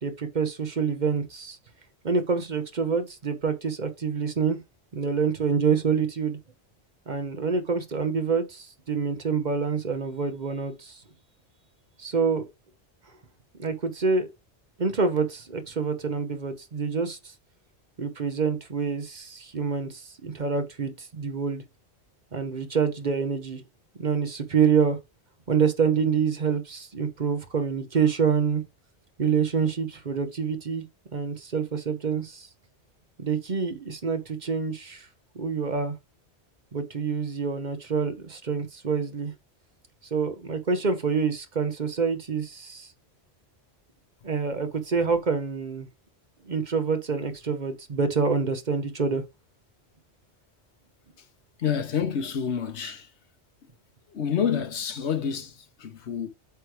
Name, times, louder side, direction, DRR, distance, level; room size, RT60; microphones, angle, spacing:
voice 1, 0.0-1.6 2.0-4.6 4.9-6.4 7.1-11.0 12.0-12.4 13.6-14.3 14.8-17.3 18.0-21.6 22.3-23.6 24.0-25.0 25.5-28.6 29.2-30.8 31.1-32.5 33.2-35.1 35.3-36.0 36.7-39.3 40.1-42.9 44.2-45.9 46.5-49.2, right 5 dB, 45° right, 1.0 m, -26 dB
voice 2, 51.6-53.1 54.1-56.3, left 7 dB, 85° left, 1.3 m, -28 dB
8.1 x 3.2 x 4.7 m
omnidirectional pair, 1.1 m